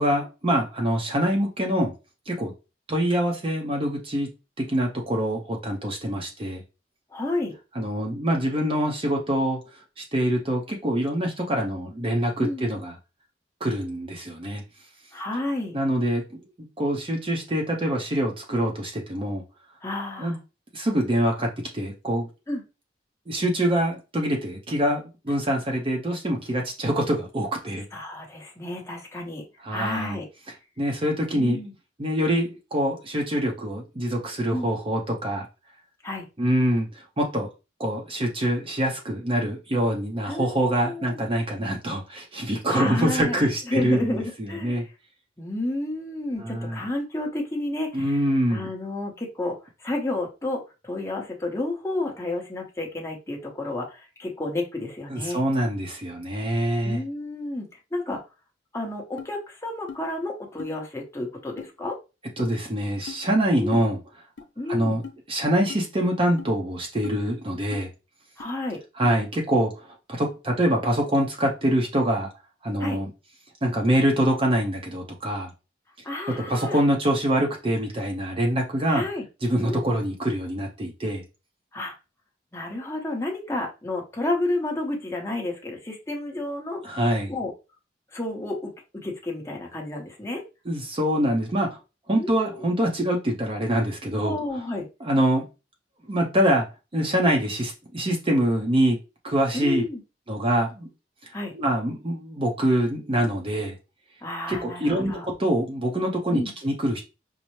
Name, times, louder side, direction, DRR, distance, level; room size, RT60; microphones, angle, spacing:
voice 1, 0.0-1.9 2.3-2.5 2.9-4.3 4.6-6.6 7.7-9.6 10.0-12.9 13.6-14.6 15.7-16.2 16.8-19.4 20.2-20.4 20.7-22.3 23.3-27.8 29.6-30.2 30.8-31.6 32.0-35.5 36.4-37.5 37.8-44.8 46.4-46.8 47.9-48.7 55.1-57.0 62.4-64.0 64.7-65.0 65.3-67.9 69.0-72.3 72.6-73.1 73.6-75.5 76.5-79.0 79.4-81.2 86.8-87.3 90.7-91.8 92.1-94.4 95.0-95.4 96.1-96.6 96.9-99.0 99.2-99.8 100.3-100.9 101.5-103.7 104.5-107.0, equal, 30° right, 0 dB, 0.6 m, -25 dB
voice 2, 7.1-7.5 12.4-12.6 15.1-15.8 19.8-20.4 22.5-22.6 27.9-30.3 31.3-31.7 34.5-34.7 36.0-36.3 40.3-41.2 42.7-43.4 43.7-44.9 45.4-48.2 48.5-55.4 56.8-58.2 58.7-62.0 63.6-63.8 64.6-65.0 68.4-68.8 72.8-73.0 76.0-76.8 78.9-79.3 79.7-79.8 81.7-82.0 82.5-87.0 87.3-87.5 88.1-90.4 92.1-92.7 94.2-94.9 99.5-100.0 101.3-101.5 104.2-105.3 106.3-106.5, left 2 dB, 15° left, 0 dB, 0.9 m, -31 dB
sound 1, 59.2-59.3 59.9-60.0 60.6-60.7 61.6-61.7 62.4-62.5 63.1-63.2 63.7-63.9 64.4-64.5 65.0-65.2 65.7-65.8 66.4-66.5 67.0-67.2 67.7-67.9 68.4-68.5 69.0-69.1, left 6 dB, 75° left, 0.6 m, -39 dB
5.3 x 2.0 x 3.1 m, 0.29 s
head